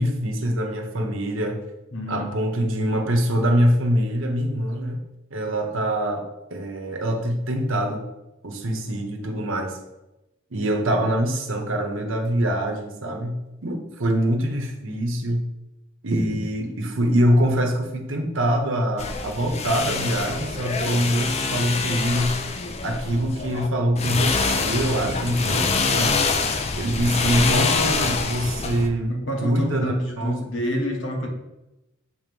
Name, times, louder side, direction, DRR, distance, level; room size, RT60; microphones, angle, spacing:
voice 1, 0.0-1.6 2.1-5.0 5.3-6.2 6.5-8.1 8.4-9.8 10.5-15.5 16.0-22.4 22.8-26.2 26.8-29.1 29.4-30.5, equal, 75° right, 3 dB, 1.1 m, -24 dB
voice 2, 1.9-2.3 29.1-31.3, equal, 70° left, 1 dB, 1.3 m, -28 dB
sound 1, 19.0-23.7 24.0-28.9, left 4 dB, 30° left, 0.5 m, -25 dB
7.0 x 3.1 x 5.3 m, 0.95 s
head